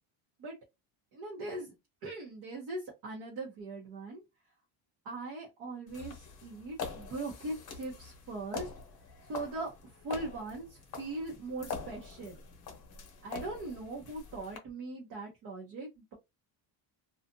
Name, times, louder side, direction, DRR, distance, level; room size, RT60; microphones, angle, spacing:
voice 1, 1.1-1.7 2.0-4.2 5.0-8.7 9.3-12.4 13.2-16.1, right 2 dB, 50° right, -2 dB, 0.9 m, -40 dB
sound 1, 5.9-14.6, left 5 dB, 40° left, 0.8 m, -45 dB
2.5 x 2.4 x 2.6 m, 0.21 s
cardioid pair, 170°, 48 cm